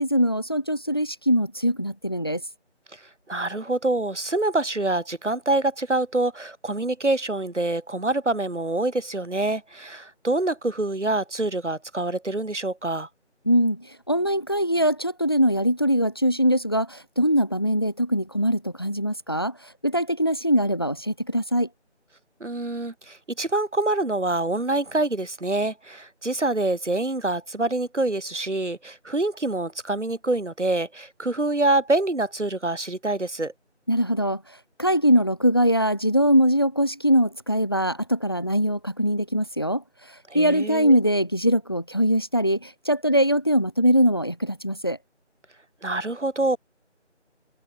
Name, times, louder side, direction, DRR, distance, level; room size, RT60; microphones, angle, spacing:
voice 1, 0.0-2.4 13.5-19.5 19.8-21.7 33.9-34.4 34.8-39.8 40.3-45.0, equal, 20° left, 1.2 m, -22 dB
voice 2, 3.3-13.1 22.4-33.5 40.3-41.0 45.8-46.6, right 2 dB, 75° right, 2.8 m, -26 dB
figure-of-eight pair, 170°, 36 cm